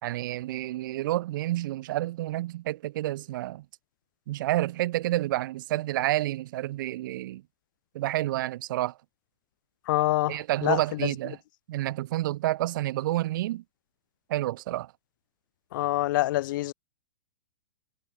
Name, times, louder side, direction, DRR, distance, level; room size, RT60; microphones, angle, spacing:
voice 1, 0.0-3.6 4.3-7.4 7.9-8.9 10.3-11.4 11.7-13.6 14.3-14.9, right 15 dB, 55° right, 3.7 m, -29 dB
voice 2, 9.9-10.8 15.7-16.7, left 16 dB, 55° left, 1.1 m, -26 dB
hypercardioid pair, 110°, 13 cm